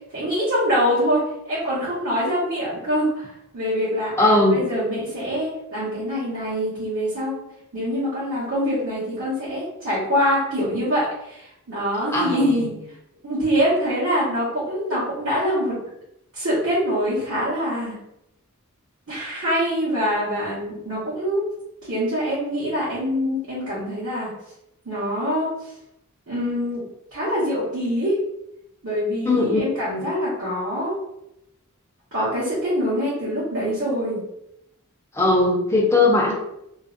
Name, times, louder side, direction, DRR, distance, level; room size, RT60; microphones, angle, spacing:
voice 1, 0.1-1.2 1.4-7.4 7.7-12.7 13.2-15.8 16.3-18.0 19.1-21.5 21.9-24.3 24.8-25.7 26.3-26.8 27.1-28.2 28.8-30.9 32.1-34.2, equal, 65° right, -11 dB, 0.9 m, -24 dB
voice 2, 4.2-4.6 12.1-12.6 29.2-29.6 29.9-30.0 35.1-36.3, left 2 dB, 10° left, -2 dB, 0.5 m, -19 dB
2.5 x 2.0 x 2.4 m, 0.82 s
head